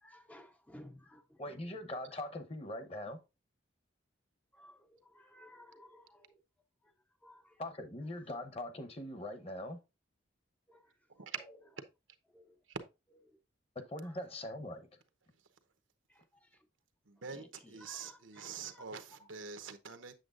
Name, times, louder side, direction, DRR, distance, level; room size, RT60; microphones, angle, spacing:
voice 1, 0.0-1.6 4.5-6.3 7.2-7.6 10.7-10.9 12.3-12.5 16.1-16.5 17.3-18.8 19.2-19.3, left 1 dB, 5° left, 0.4 m, -57 dB
voice 2, 1.4-3.2 7.6-9.8 13.7-14.9, left 1 dB, 30° left, 0.8 m, -42 dB
voice 3, 17.1-20.1, right 6 dB, 80° right, 0.9 m, -44 dB
7.9 x 7.2 x 2.5 m
head